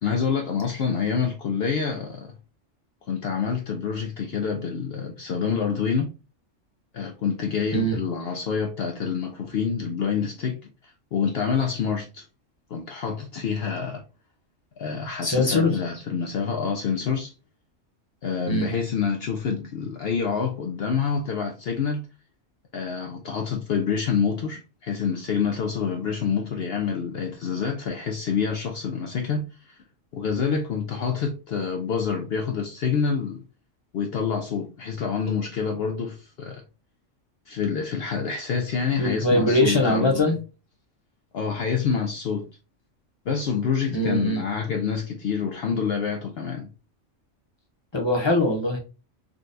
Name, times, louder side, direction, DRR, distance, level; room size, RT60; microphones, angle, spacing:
voice 1, 0.0-2.3 3.1-6.1 6.9-10.6 11.1-12.3 12.7-14.1 14.8-17.3 18.2-22.1 22.7-29.8 30.1-33.4 33.9-36.6 37.5-40.3 41.3-42.5 43.3-46.7, left 6 dB, 65° left, 0.7 m, -27 dB
voice 2, 15.2-15.8 18.5-18.7 39.0-40.3 43.9-44.4 47.9-48.8, left 1 dB, 25° left, 0.7 m, -22 dB
3.8 x 2.3 x 2.5 m
omnidirectional pair, 1.3 m